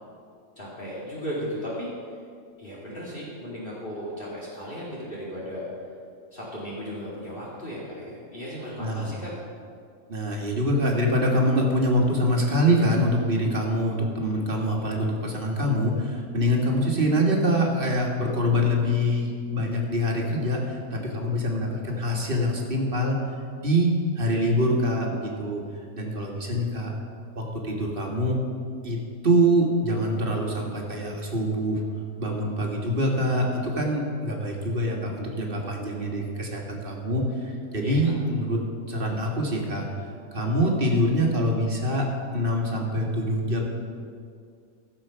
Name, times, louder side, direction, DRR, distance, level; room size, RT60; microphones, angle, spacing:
voice 1, 0.6-1.9 2.6-5.7 6.3-9.3 37.8-38.0, equal, 40° left, -6 dB, 2.4 m, -35 dB
voice 2, 8.8-9.1 10.1-23.2 23.6-25.6 26.0-26.9 27.4-28.4 28.8-29.0 29.2-31.8 32.2-38.6 38.9-39.9 40.3-42.1 42.3-43.7, equal, 40° right, 0 dB, 1.9 m, -24 dB
15.5 x 7.3 x 5.7 m, 2.3 s
omnidirectional pair, 1.5 m